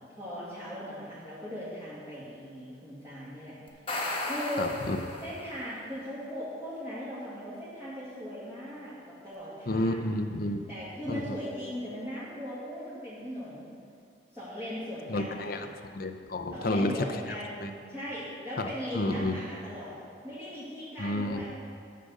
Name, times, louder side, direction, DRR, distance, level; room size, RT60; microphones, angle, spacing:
voice 1, 0.0-3.6 4.2-4.8 5.2-10.1 10.7-13.7 14.3-15.7 16.5-20.0 20.2-21.5, equal, 15° right, -13 dB, 2.4 m, -39 dB
sound 1, 3.7-5.6, left 2 dB, 30° left, 1.5 m, -35 dB
voice 2, 4.6-5.0 9.7-10.7 11.1-11.3 15.1-15.7 15.9-16.9 17.6-17.7 18.6-18.7 18.9-19.4 21.0-21.4, left 1 dB, 55° left, 7 dB, 0.7 m, -30 dB
11.5 x 6.7 x 6.5 m, 2.3 s
head